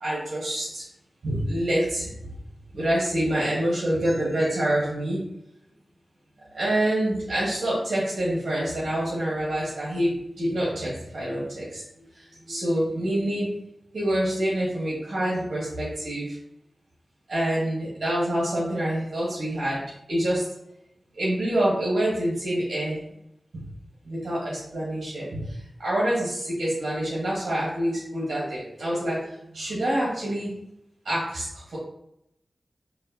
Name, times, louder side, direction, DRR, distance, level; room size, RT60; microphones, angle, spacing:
voice 1, 0.0-0.8 1.2-2.1 2.7-5.2 6.5-10.1 10.4-11.8 12.2-13.5 13.9-16.3 17.3-19.8 20.1-20.4 21.2-23.0 24.0-25.4 25.8-30.5 31.0-31.8, right 1 dB, 80° right, -6 dB, 1.2 m, -26 dB
4.8 x 2.3 x 2.7 m, 0.80 s
wide cardioid pair, 75°, 0 cm